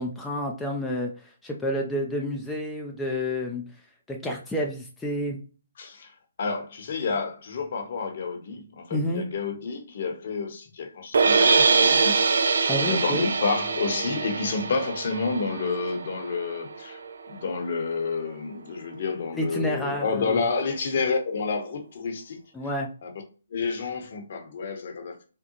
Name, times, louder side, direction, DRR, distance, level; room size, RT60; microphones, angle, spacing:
voice 1, 0.0-3.7 4.1-5.4 8.9-9.3 12.7-13.3 19.4-20.4 22.5-22.9, equal, 5° left, 0.4 m, -29 dB
voice 2, 5.8-6.1 6.4-17.0 17.3-22.4 23.0-23.1 23.5-25.2, left 4 dB, 55° left, 0.8 m, -30 dB
sound 1, 11.1-17.3, right 4 dB, 70° right, 0.3 m, -24 dB
3.6 x 2.1 x 2.8 m
hypercardioid pair, 140°, 0 cm